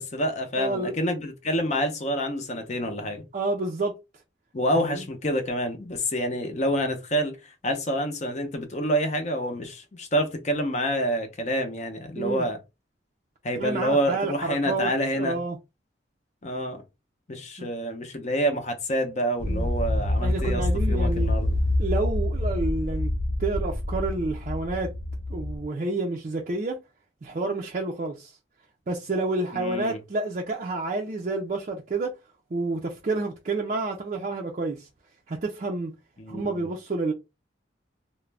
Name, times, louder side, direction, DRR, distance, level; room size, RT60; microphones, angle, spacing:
voice 1, 0.0-3.2 4.5-7.4 7.6-12.6 13.4-15.4 16.4-16.8 17.3-20.6 20.9-21.5 29.5-30.0 36.2-36.7, equal, 40° left, 0.6 m, -27 dB
voice 2, 0.6-1.0 3.3-4.0 4.7-5.0 12.2-12.5 13.6-15.6 17.6-17.7 19.4-19.7 20.2-21.3 21.8-23.1 23.4-24.9 25.3-26.8 27.2-28.4 28.9-32.2 32.5-34.9 35.3-35.9 36.3-37.1, right 3 dB, 40° right, 0.4 m, -29 dB
sound 1, 19.4-25.6, left 1 dB, 90° left, 0.6 m, -26 dB
2.4 x 2.1 x 3.2 m
head